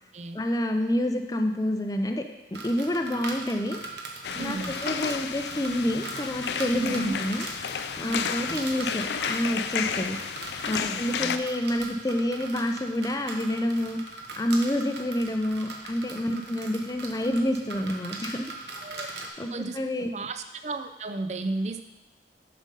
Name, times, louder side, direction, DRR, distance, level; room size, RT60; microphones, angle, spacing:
voice 1, 0.3-2.2 2.5-3.8 4.4-7.5 8.0-10.2 10.7-14.0 14.4-18.5 19.0-20.1, left 1 dB, 20° left, 5 dB, 0.5 m, -28 dB
sound 1, 2.5-19.3, right 3 dB, 80° right, 1.0 m, -40 dB
sound 2, 4.2-11.4, left 7 dB, 75° left, 0.4 m, -32 dB
voice 2, 4.3-4.8 6.8-7.2 8.0-8.6 10.8-11.4 16.3-16.4 18.8-19.1 19.5-19.8 20.1-21.8, right 3 dB, 40° right, 8 dB, 0.4 m, -34 dB
7.3 x 5.1 x 5.4 m, 1.1 s
head